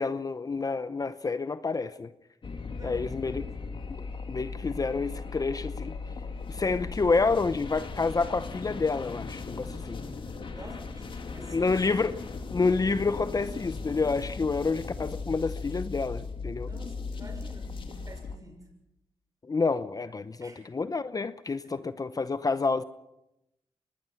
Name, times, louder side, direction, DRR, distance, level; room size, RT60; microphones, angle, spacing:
voice 1, 0.0-2.1 2.8-3.4 3.9-5.9 6.5-10.0 11.5-12.1 12.5-16.7 19.5-22.8, left 4 dB, 35° left, 0.8 m, -28 dB
sound 1, 2.4-18.4, left 4 dB, 55° left, 2.4 m, -38 dB
voice 2, 2.7-3.5 10.5-12.2 16.6-18.7 20.4-20.6 21.8-21.9, right 1 dB, 35° right, 6.4 m, -49 dB
24.5 x 19.5 x 5.9 m
cardioid pair, 70°, 10 cm